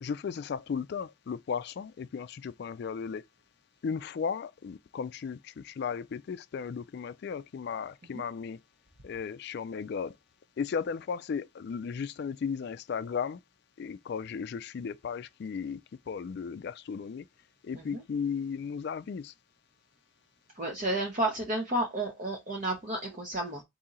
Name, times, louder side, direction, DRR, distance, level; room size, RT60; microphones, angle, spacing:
voice 1, 0.0-3.2 3.8-8.6 9.0-10.2 10.6-13.4 13.8-15.8 16.1-17.3 17.6-19.3, left 6 dB, 50° left, 0.3 m, -35 dB
voice 2, 20.6-23.6, right 1 dB, 40° right, 0.8 m, -32 dB
4.3 x 2.7 x 3.8 m
head